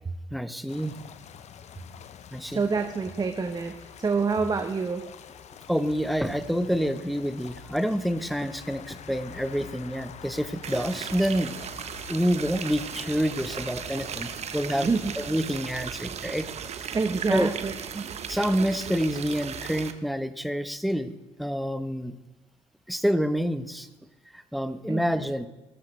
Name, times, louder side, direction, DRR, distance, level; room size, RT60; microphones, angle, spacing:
voice 1, 0.3-1.0 2.3-2.6 5.7-11.6 12.1-14.9 15.2-17.0 17.3-17.5 18.3-22.1 22.9-23.9 24.3-25.5, equal, ahead, 11 dB, 1.1 m, -28 dB
sound 1, 0.7-15.3, left 8 dB, 55° left, 0.9 m, -47 dB
voice 2, 2.5-5.0 14.8-15.1 16.9-18.1 24.9-25.0, right 4 dB, 30° right, 7 dB, 1.1 m, -27 dB
sound 2, 10.6-19.9, right 7 dB, 50° right, 1.1 m, -37 dB
17.0 x 13.5 x 3.3 m, 1.1 s
hypercardioid pair, 55°, 14 cm